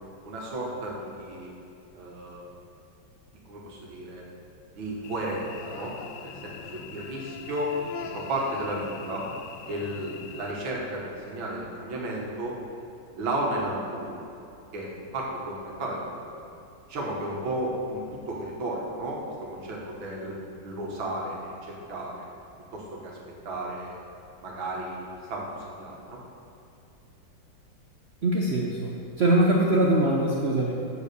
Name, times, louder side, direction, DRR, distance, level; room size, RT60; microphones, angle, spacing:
voice 1, 0.2-1.5 1.9-2.4 3.5-4.2 4.8-5.9 6.2-7.7 8.1-9.2 9.7-12.6 13.2-14.2 14.7-16.4 16.9-19.2 19.5-20.4 20.6-22.2 22.7-23.1 23.4-24.0 24.4-26.2, right 1 dB, 80° right, -2 dB, 2.2 m, -33 dB
Cricket / Buzz, 5.0-10.5, left 6 dB, 75° left, 1.2 m, -42 dB
voice 2, 28.2-28.9 29.2-30.7, right 1 dB, 65° right, -3 dB, 0.6 m, -22 dB
8.3 x 4.8 x 6.6 m, 2.7 s
omnidirectional pair, 2.1 m